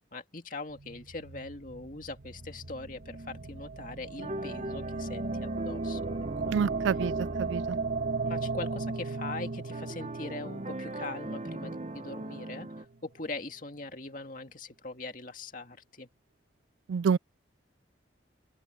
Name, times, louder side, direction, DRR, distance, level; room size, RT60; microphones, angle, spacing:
voice 1, 0.1-6.5 8.2-16.1, left 3 dB, 45° left, 2.2 m, -41 dB
sound 1, 0.7-13.0, right 3 dB, 60° right, 1.5 m, -37 dB
sound 2, 4.2-12.8, right 1 dB, 35° right, 0.8 m, -40 dB
voice 2, 6.5-7.1 7.4-7.8 16.9-17.2, right 6 dB, 80° right, 0.3 m, -27 dB
open air
head